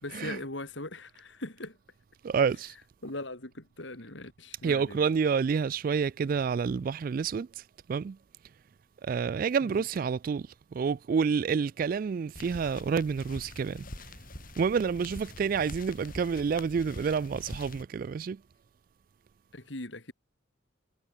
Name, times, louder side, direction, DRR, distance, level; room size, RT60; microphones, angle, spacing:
voice 1, 0.0-1.8 3.0-5.0 9.6-9.9 19.5-20.1, left 2 dB, 70° left, 3.9 m, -40 dB
voice 2, 2.2-2.7 4.6-7.6 7.9-8.2 9.0-13.9 14.6-18.4, right 6 dB, 45° right, 0.3 m, -29 dB
sound 1, 12.3-17.8, left 1 dB, 45° left, 4.3 m, -45 dB
head